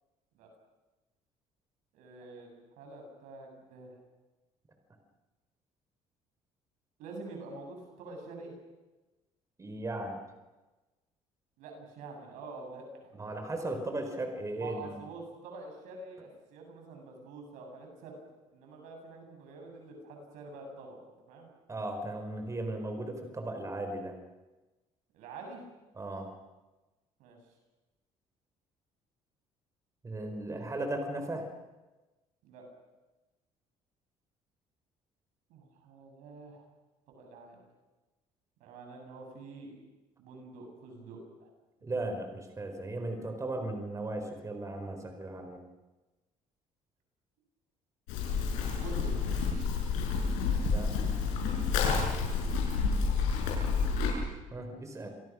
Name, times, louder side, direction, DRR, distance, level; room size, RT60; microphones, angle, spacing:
voice 1, 1.9-3.9 7.0-8.5 11.6-13.1 14.6-18.2 18.5-21.0 21.3-21.5 25.1-25.6 27.2-27.4 32.4-32.7 35.5-36.6 37.1-37.7 38.6-39.8 40.2-41.5 48.5-49.8 50.5-50.6 53.7-54.0, right 3 dB, 85° right, 2 dB, 7.8 m, -47 dB
voice 2, 9.6-10.2 13.1-15.0 21.7-24.2 25.9-26.3 30.0-31.5 41.8-45.6 50.7-51.3 54.5-55.2, right 2 dB, 25° right, 5 dB, 4.4 m, -37 dB
Livestock farm animals working animals, 48.1-54.1, left 5 dB, 90° left, 7.7 m, -29 dB
29.5 x 24.0 x 6.3 m, 1.1 s
cardioid pair, 100°, 13 cm